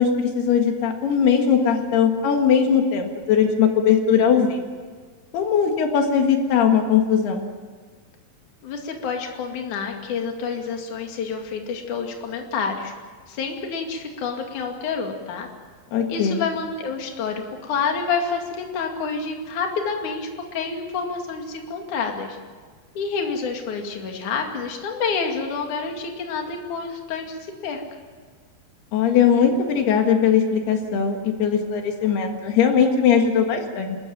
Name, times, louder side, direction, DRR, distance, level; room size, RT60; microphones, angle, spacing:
voice 1, 0.0-4.6 5.3-7.5 15.9-16.5 28.9-34.0, left 7 dB, 85° left, 4 dB, 3.7 m, -19 dB
voice 2, 8.6-12.9 13.3-15.5 16.1-22.4 23.0-27.8, left 5 dB, 55° left, 2 dB, 3.6 m, -28 dB
29.0 x 14.0 x 9.1 m, 1.5 s
omnidirectional pair, 4.5 m